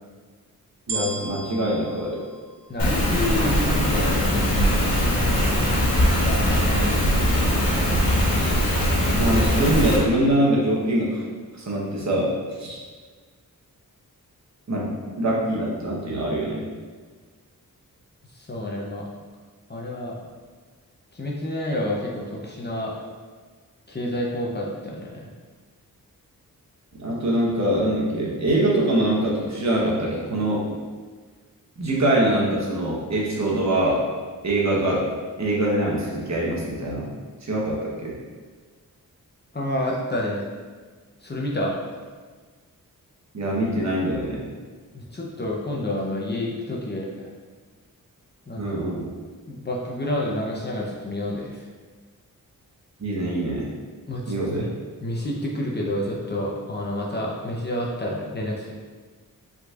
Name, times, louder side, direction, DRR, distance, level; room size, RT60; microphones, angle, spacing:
voice 1, 0.9-2.3 9.1-11.2 11.7-12.8 14.7-16.7 27.0-30.6 31.8-34.1 34.4-37.1 37.4-38.2 43.3-44.5 48.6-49.1 53.0-53.7 54.3-54.7, right 1 dB, 50° right, -4 dB, 1.1 m, -24 dB
sound 1, 0.9-3.3 3.9-4.0, right 3 dB, 70° right, 0.8 m, -35 dB
voice 2, 2.7-5.7 6.1-6.9 7.2-7.3 18.3-19.1 19.7-20.2 21.1-23.0 23.9-25.3 39.5-40.4 41.2-41.8 44.9-47.3 48.5-48.8 49.5-51.6 54.1-54.7 55.0-58.7, left 1 dB, 30° left, -3 dB, 0.7 m, -29 dB
Rain, 2.8-10.0, equal, 90° left, 1.2 m, -21 dB
5.4 x 4.0 x 2.4 m, 1.5 s
wide cardioid pair, 110°, 35 cm